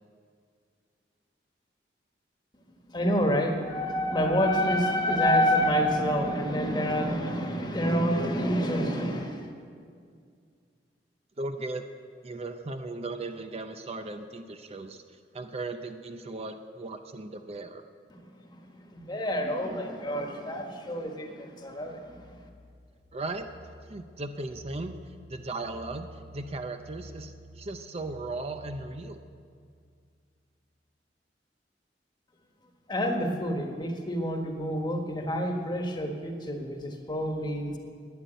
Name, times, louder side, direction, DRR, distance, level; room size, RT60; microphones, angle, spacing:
voice 1, 2.9-9.5 18.2-18.3 18.6-22.4 32.9-37.8, equal, 25° left, 3 dB, 1.5 m, -28 dB
voice 2, 11.4-11.9 12.2-17.8 23.1-23.5 23.9-29.2, right 2 dB, 35° right, 7 dB, 0.6 m, -37 dB
sound 1, 21.7-29.5, right 1 dB, 60° right, 1.8 m, -51 dB
12.0 x 10.0 x 9.1 m, 2.2 s
head